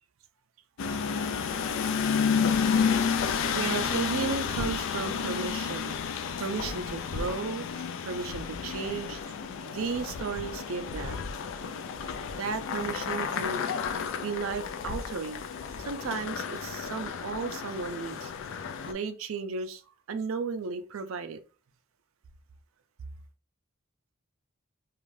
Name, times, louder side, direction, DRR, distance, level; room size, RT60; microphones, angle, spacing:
sound 1, 0.8-18.9, left 6 dB, 60° left, 0.3 m, -31 dB
voice 1, 3.3-9.2 9.6-11.2 12.4-13.6 14.2-15.4 15.9-18.3 18.9-19.8 20.1-21.4, right 4 dB, 70° right, 0.4 m, -34 dB
2.5 x 2.4 x 3.1 m
head